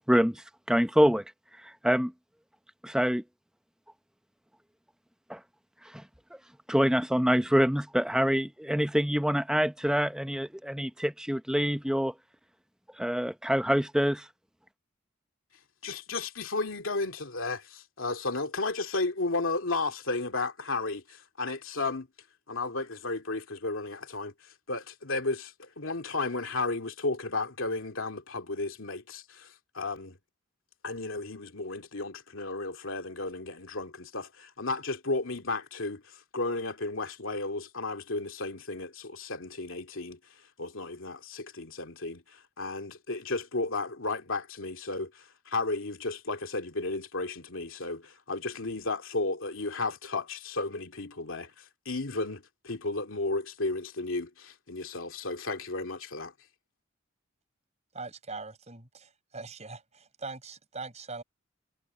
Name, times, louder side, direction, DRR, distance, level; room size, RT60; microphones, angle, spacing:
voice 1, 0.1-1.2 1.6-2.1 2.8-3.2 5.3-5.4 5.9-6.0 6.3-6.4 6.7-12.1 13.0-14.3, equal, 5° right, 0.8 m, -26 dB
voice 2, 15.8-22.1 22.5-30.2 30.8-56.3, left 3 dB, 70° left, 2.6 m, -34 dB
voice 3, 57.9-61.2, right 3 dB, 30° right, 5.6 m, -42 dB
head